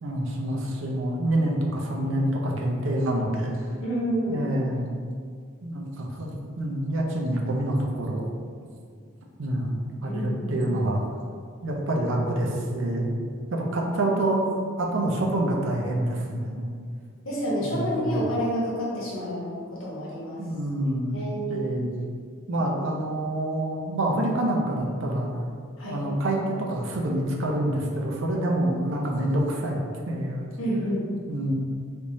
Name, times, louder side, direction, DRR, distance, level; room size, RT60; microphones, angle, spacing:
voice 1, 0.0-3.7 4.3-4.9 5.6-8.2 9.4-11.0 11.6-13.2 13.5-16.7 17.6-18.3 20.4-21.1 21.5-21.9 22.5-25.4 25.8-29.8 30.1-30.5 31.3-31.5, right 1 dB, 65° right, -1 dB, 0.5 m, -27 dB
voice 2, 3.8-4.5 10.1-10.8 13.8-13.9 17.2-20.4 21.1-21.5 22.6-22.7 25.8-26.0 30.6-31.1, equal, 75° left, -7 dB, 1.1 m, -29 dB
3.4 x 3.0 x 2.6 m, 2.1 s
head